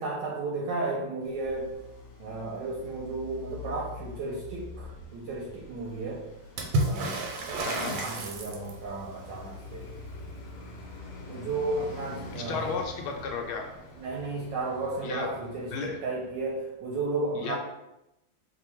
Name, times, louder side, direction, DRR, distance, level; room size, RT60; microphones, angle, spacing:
voice 1, 0.0-1.7 2.2-6.2 6.8-9.9 11.3-12.7 14.0-17.6, right 3 dB, 70° right, -2 dB, 1.1 m, -34 dB
Traffic noise roadway noise, 1.2-16.7, left 3 dB, 60° left, 1.2 m, -45 dB
Water / Splash splatter, 6.6-9.0 12.2-12.3 12.6-13.4 14.5-14.6, right 2 dB, 90° right, 1.6 m, -31 dB
voice 2, 7.6-7.9 12.3-13.7 15.0-16.0 17.3-17.6, left 4 dB, 80° left, 2 dB, 1.4 m, -34 dB
3.5 x 2.2 x 4.3 m, 0.90 s
omnidirectional pair, 2.4 m